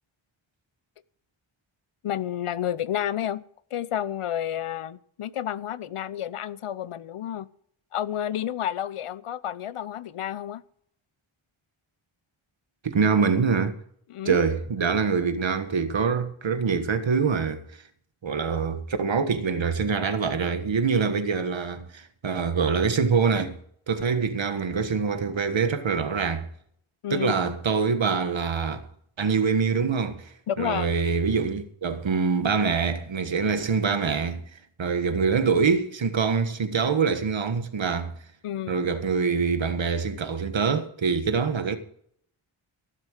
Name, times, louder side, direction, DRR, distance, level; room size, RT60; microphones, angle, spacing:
voice 1, 2.0-3.4 3.7-7.5 7.9-10.6 14.1-14.4 27.0-27.5 30.5-31.0 38.4-38.9, left 10 dB, 85° left, 0.7 m, -30 dB
voice 2, 12.8-13.7 14.2-17.6 18.2-23.6 23.9-26.5 27.1-28.8 29.2-34.4 34.8-38.1 38.7-41.8, right 5 dB, 65° right, 1.4 m, -25 dB
15.5 x 7.5 x 6.5 m
wide cardioid pair, 85°, 50 cm